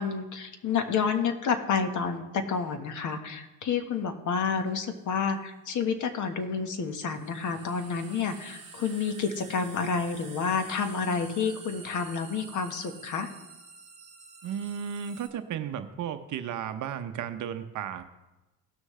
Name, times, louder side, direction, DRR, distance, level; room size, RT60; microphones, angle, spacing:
voice 1, 0.0-13.3, left 5 dB, 45° left, 7 dB, 1.4 m, -29 dB
sound 1, 4.8-4.9 6.9-15.3, right 4 dB, 15° right, 2.6 m, -48 dB
voice 2, 14.4-18.0, right 8 dB, 45° right, 9 dB, 0.8 m, -34 dB
17.5 x 6.3 x 3.2 m, 1.0 s
supercardioid pair, 105°, 42 cm